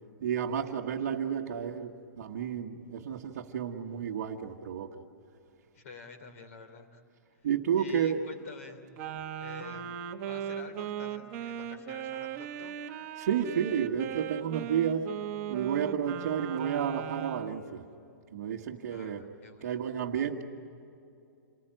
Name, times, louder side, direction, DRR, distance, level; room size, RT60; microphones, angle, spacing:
voice 1, 0.2-1.9 2.2-4.9 7.4-8.3 13.2-15.1 15.5-17.8 18.3-19.3 19.6-20.4, right 8 dB, 40° right, -3 dB, 1.3 m, -31 dB
voice 2, 5.7-7.0 7.8-8.8 9.4-9.8 10.3-12.8 18.9-19.8, left 4 dB, 45° left, 8 dB, 3.1 m, -49 dB
Wind instrument woodwind instrument, 9.0-17.6, right 9 dB, 20° right, 1.1 m, -38 dB
28.0 x 20.0 x 9.0 m, 2.6 s
hypercardioid pair, 180°, 10 cm